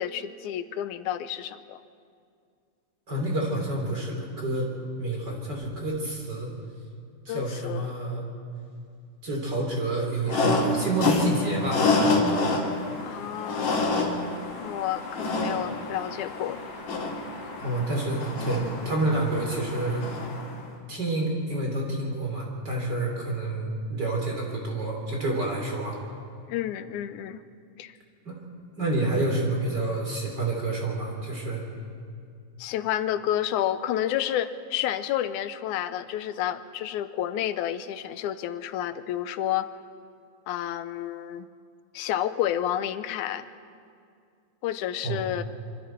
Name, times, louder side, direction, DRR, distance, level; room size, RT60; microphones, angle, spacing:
voice 1, 0.0-1.8 7.3-7.9 13.1-13.9 14.6-16.6 26.5-27.4 27.8-28.0 32.6-39.7 40.5-41.5 41.9-43.5 44.6-45.4, left 11 dB, 85° left, 12 dB, 2.1 m, -30 dB
voice 2, 3.1-6.5 7.3-8.2 9.2-12.2 17.6-20.0 20.9-26.0 28.3-28.4 28.8-31.6 45.0-45.2, right 2 dB, 35° right, -1 dB, 3.5 m, -28 dB
sound 1, 10.3-20.6, left 3 dB, 65° left, 3.9 m, -28 dB
26.0 x 24.5 x 4.5 m, 2.3 s
omnidirectional pair, 3.5 m